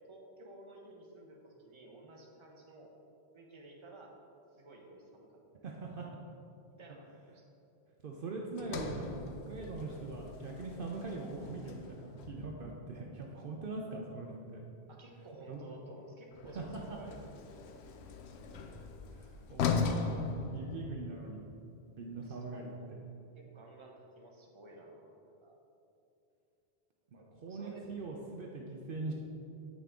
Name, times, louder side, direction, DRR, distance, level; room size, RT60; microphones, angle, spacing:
voice 1, 0.1-2.9 3.3-4.1 4.6-5.7 6.8-7.5 14.9-17.2 17.6-17.8 22.2-23.0 23.3-25.6 27.5-27.8, right 2 dB, 30° right, 0 dB, 0.9 m, -54 dB
voice 2, 5.6-6.1 8.0-14.6 15.5-15.7 16.5-17.0 18.5-18.6 19.1-20.1 20.5-21.4 22.0-22.7 27.1-29.1, right 3 dB, 60° right, 0 dB, 0.8 m, -42 dB
Sliding door, 8.6-12.8 16.3-21.3, left 5 dB, 85° left, 0.9 m, -39 dB
8.3 x 5.7 x 3.6 m, 2.7 s
omnidirectional pair, 1.1 m